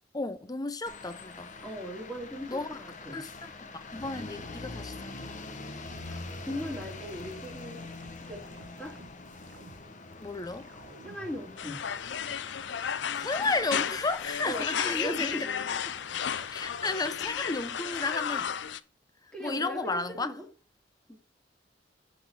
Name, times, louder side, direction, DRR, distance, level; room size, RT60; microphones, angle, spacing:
voice 1, 0.1-1.5 2.5-2.8 3.1-5.4 10.2-10.7 13.2-15.5 15.9-16.0 16.5-18.5 19.4-20.3, left 3 dB, 20° left, 0.7 m, -33 dB
sound 1, 0.9-17.8, left 3 dB, 45° left, 1.0 m, -45 dB
voice 2, 1.6-3.2 6.4-7.8 8.2-9.0 11.0-11.8 14.4-15.5 16.4-16.5 19.3-20.4 21.1-21.2, equal, 5° left, 2.0 m, -38 dB
sound 2, 5.8-11.4, right 3 dB, 85° right, 0.8 m, -53 dB
sound 3, 11.6-18.8, left 8 dB, 75° left, 0.5 m, -33 dB
6.4 x 6.1 x 7.3 m
head